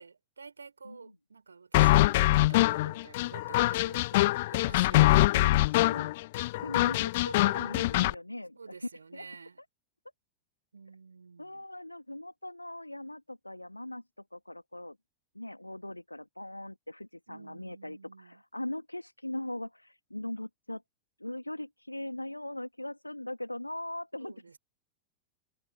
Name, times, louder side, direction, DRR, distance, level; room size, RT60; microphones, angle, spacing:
voice 1, 0.0-5.3 8.6-9.6 10.7-11.7 17.3-18.4 24.2-24.6, right 5 dB, 75° right, 5.5 m, -50 dB
sound 1, 1.7-8.1, left 18 dB, 50° left, 0.8 m, -24 dB
voice 2, 5.0-6.1 6.6-9.3 11.4-14.0 14.3-15.0 15.3-20.8 21.2-24.3, left 1 dB, 85° left, 2.1 m, -40 dB
figure-of-eight pair, 90°, 0 cm